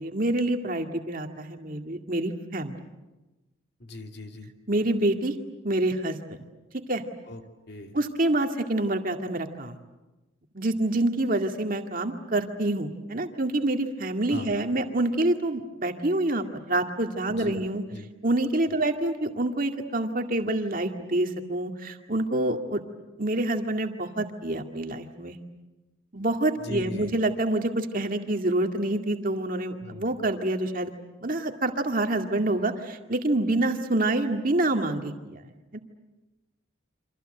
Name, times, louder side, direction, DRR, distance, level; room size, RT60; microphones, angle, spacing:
voice 1, 0.0-2.7 4.7-5.3 5.6-6.4 6.7-7.0 7.9-9.8 10.5-17.8 18.2-22.8 23.2-25.4 26.1-30.9 31.2-35.4 35.7-35.8, right 1 dB, 40° right, 5 dB, 2.1 m, -27 dB
voice 2, 3.8-4.5 7.3-7.4 7.7-7.9 14.3-14.5 17.4-17.6 17.9-18.1 26.6-27.1 29.8-30.2, left 2 dB, 55° left, 4 dB, 2.5 m, -39 dB
29.0 x 26.0 x 7.9 m, 1.1 s
head